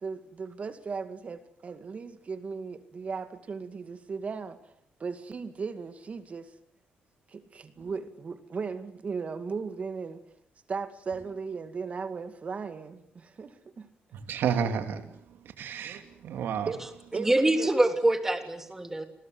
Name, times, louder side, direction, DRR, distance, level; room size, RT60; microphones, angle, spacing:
voice 1, 0.0-4.6 5.0-6.5 7.3-10.2 10.7-13.9 16.7-16.8 17.1-17.7, right 5 dB, 40° right, 2.2 m, -37 dB
voice 2, 14.1-15.0 15.6-16.7, right 7 dB, 80° right, 2.9 m, -30 dB
voice 3, 17.1-19.0, right 1 dB, 10° right, 3.1 m, -25 dB
29.5 x 21.5 x 8.0 m
cardioid pair, 125°, 4 cm